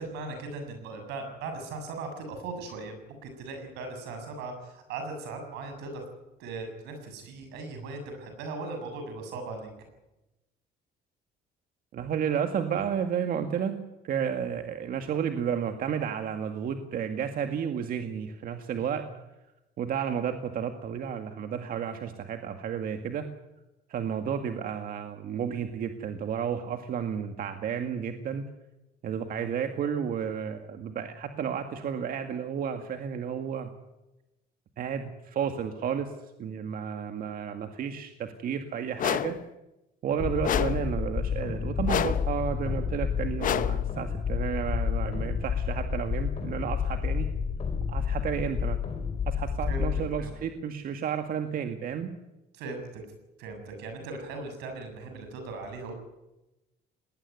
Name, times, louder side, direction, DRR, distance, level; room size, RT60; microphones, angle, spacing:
voice 1, 0.0-2.9 3.2-6.0 6.4-9.7 18.8-19.1 49.7-50.3 52.5-53.0 53.4-55.9, right 3 dB, 90° right, 5 dB, 7.3 m, -38 dB
voice 2, 11.9-13.8 14.0-19.0 19.8-23.3 23.9-28.5 29.0-33.7 34.8-36.1 36.4-39.4 40.0-47.3 47.9-48.8 49.3-52.1, right 8 dB, 60° right, 6 dB, 2.0 m, -32 dB
sound 1, 39.0-39.4 40.4-40.9 41.9-42.3 43.4-43.9, left 10 dB, 50° left, 1.0 m, -29 dB
sound 2, 40.2-50.1, left 7 dB, 35° left, 4.4 m, -30 dB
19.5 x 19.5 x 9.5 m, 0.98 s
cardioid pair, 110°, 17 cm